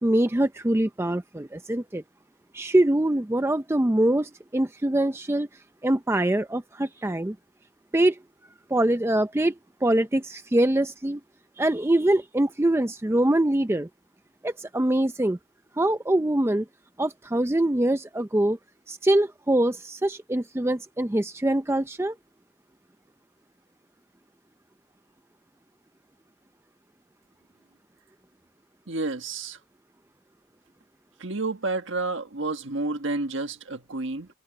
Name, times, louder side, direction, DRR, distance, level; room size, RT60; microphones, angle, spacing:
voice 1, 0.0-2.0 2.5-5.5 5.8-7.4 7.9-8.2 8.7-9.5 9.8-11.2 11.6-13.9 14.4-15.4 15.8-16.7 17.0-18.6 18.9-22.1, right 1 dB, 10° right, 0.4 m, -23 dB
voice 2, 28.9-29.6 31.2-34.3, right 3 dB, 60° right, 1.7 m, -30 dB
head